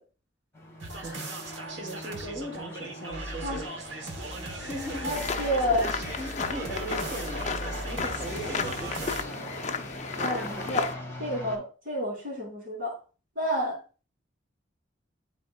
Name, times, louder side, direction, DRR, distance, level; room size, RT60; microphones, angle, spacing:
sound 1, 0.5-11.6, equal, 15° left, 2.0 m, -41 dB
sound 2, 0.8-9.2, right 2 dB, 80° right, 1.2 m, -38 dB
voice 1, 0.9-3.7 4.6-9.2 10.2-10.7, right 1 dB, 15° right, 3.5 m, -39 dB
voice 2, 5.0-5.8 10.2-10.8 11.2-13.0 13.4-13.8, equal, 50° right, 3.0 m, -29 dB
sound 3, 5.1-10.9, left 5 dB, 40° left, 0.5 m, -34 dB
11.5 x 4.2 x 2.4 m
head